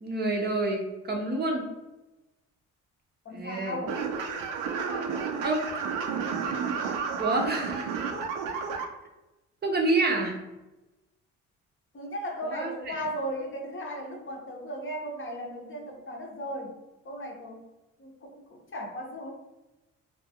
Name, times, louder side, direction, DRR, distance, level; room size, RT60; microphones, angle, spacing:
voice 1, 0.0-0.8 1.1-1.7 3.3-3.8 5.4-5.7 7.2-7.9 9.6-10.4 12.4-12.9, right 2 dB, 30° right, 0 dB, 0.5 m, -28 dB
voice 2, 3.2-4.0 11.9-16.8 17.0-17.6 18.0-19.3, equal, 40° left, 1 dB, 0.6 m, -36 dB
sound 1, 3.9-8.8, right 6 dB, 80° right, 0.5 m, -31 dB
2.3 x 2.2 x 2.7 m, 1.0 s
supercardioid pair, 65°, 32 cm